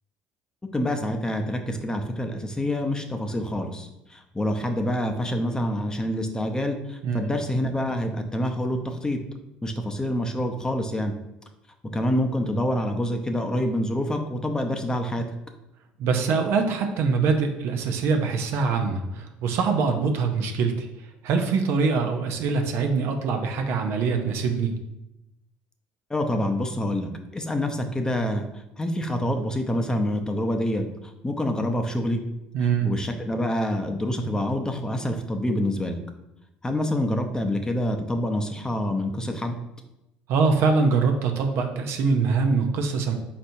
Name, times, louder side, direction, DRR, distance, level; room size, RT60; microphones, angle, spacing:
voice 1, 0.7-9.2 9.6-11.1 11.9-15.2 26.1-28.5 28.8-30.8 31.2-32.2 32.8-36.0 36.6-39.6, left 1 dB, 15° left, 5 dB, 0.6 m, -26 dB
voice 2, 16.0-20.9 21.2-24.8 32.5-32.9 40.3-43.1, right 5 dB, 65° right, 4 dB, 0.6 m, -23 dB
4.3 x 4.2 x 2.7 m, 0.90 s
hypercardioid pair, 65°, 5 cm